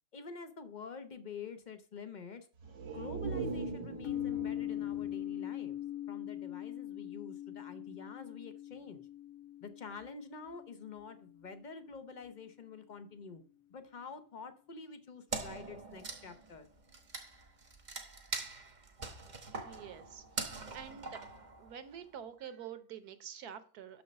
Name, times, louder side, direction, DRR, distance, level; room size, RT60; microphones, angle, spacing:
voice 1, 0.1-2.5 2.9-5.8 6.1-9.0 9.6-13.4 13.7-16.7, left 5 dB, 45° left, 9 dB, 0.6 m, -48 dB
sound 1, 2.6-6.3 6.7-6.8, right 4 dB, 85° right, 2.0 m, -41 dB
sound 2, 4.0-11.8, left 13 dB, 70° left, 1.3 m, -41 dB
Wood, 15.3-22.0, right 3 dB, 30° right, 0.9 m, -43 dB
voice 2, 19.6-21.2 21.6-24.0, right 8 dB, 65° right, 11 dB, 1.3 m, -47 dB
6.4 x 6.3 x 5.2 m, 0.41 s
omnidirectional pair, 1.8 m